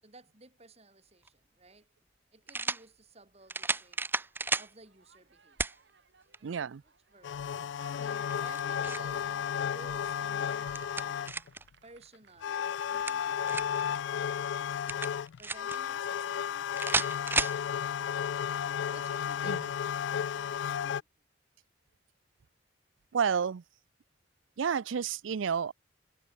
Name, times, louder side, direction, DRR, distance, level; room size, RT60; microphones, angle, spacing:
voice 1, 0.0-1.9 2.3-4.0 4.6-5.7 6.4-6.6 7.1-7.4 7.9-11.2 11.8-14.6 15.4-17.3 17.9-19.9 20.2-20.9, right 2 dB, 35° right, 6.6 m, -56 dB
sound 1, 1.2-1.3 2.5-2.8 3.5-4.7 5.6-5.8 6.3-6.4 8.3-9.1 10.5-11.6 12.8-13.8 14.9-15.8 16.8-17.6, right 3 dB, 10° right, 0.4 m, -32 dB
sound 2, 3.4-13.6 14.0-16.5 17.0-19.8 20.7-20.8, right 5 dB, 60° right, 1.6 m, -58 dB
voice 2, 6.4-6.8 19.4-19.6 23.1-23.6 24.6-25.7, right 7 dB, 80° right, 0.5 m, -30 dB
sound 3, 7.2-11.5 12.4-21.0, left 8 dB, 65° left, 0.3 m, -33 dB
head